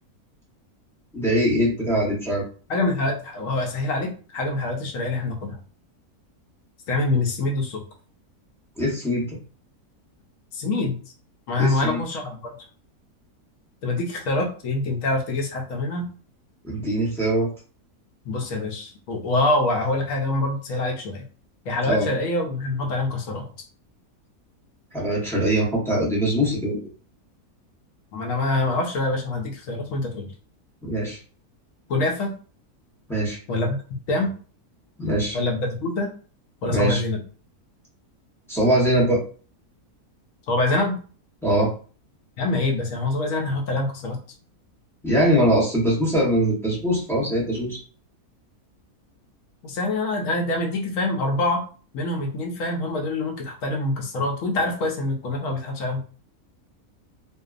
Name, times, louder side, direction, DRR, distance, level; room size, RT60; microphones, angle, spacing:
voice 1, 1.1-2.4 8.8-9.4 11.6-12.0 16.6-17.5 21.9-22.1 24.9-26.8 30.8-31.2 33.1-33.4 35.0-35.4 36.7-37.0 38.5-39.2 41.4-41.7 45.0-47.8, equal, 5° left, -5 dB, 0.5 m, -22 dB
voice 2, 2.7-5.6 6.9-7.8 10.5-11.0 11.5-12.5 13.8-16.1 18.3-21.3 21.7-23.4 28.1-30.3 31.9-32.3 33.5-33.8 34.1-34.3 35.3-36.1 36.6-37.2 40.5-41.0 42.4-44.2 49.6-51.6 51.9-56.0, left 2 dB, 70° left, 1 dB, 0.9 m, -25 dB
2.6 x 2.2 x 2.4 m, 0.39 s
omnidirectional pair, 1.6 m